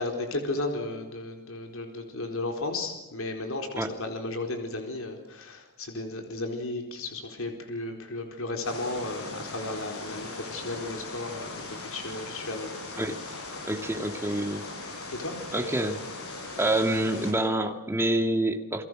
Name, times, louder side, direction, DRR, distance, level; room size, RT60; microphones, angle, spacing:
voice 1, 0.0-12.7 15.1-15.4, left 2 dB, 65° left, 4 dB, 4.3 m, -34 dB
sound 1, 8.6-17.3, left 3 dB, 85° left, 6.1 m, -39 dB
voice 2, 13.6-14.6 15.5-16.0 16.6-18.8, right 1 dB, 10° right, 5 dB, 2.2 m, -27 dB
29.5 x 23.0 x 6.4 m, 1.0 s
head